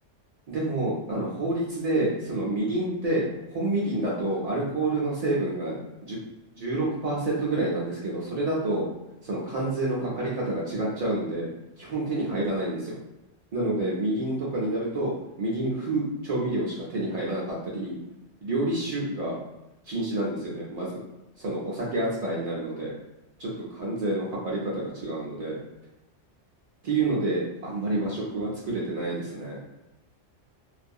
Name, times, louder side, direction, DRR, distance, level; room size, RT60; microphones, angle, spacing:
voice 1, 0.5-6.2 6.5-8.9 9.2-11.5 11.8-13.0 13.5-15.1 15.4-17.9 18.4-19.4 19.9-21.0 21.4-22.9 23.4-25.6 26.8-29.6, right 2 dB, 65° right, -5 dB, 0.4 m, -28 dB
2.6 x 2.4 x 2.2 m, 0.95 s
omnidirectional pair, 1.2 m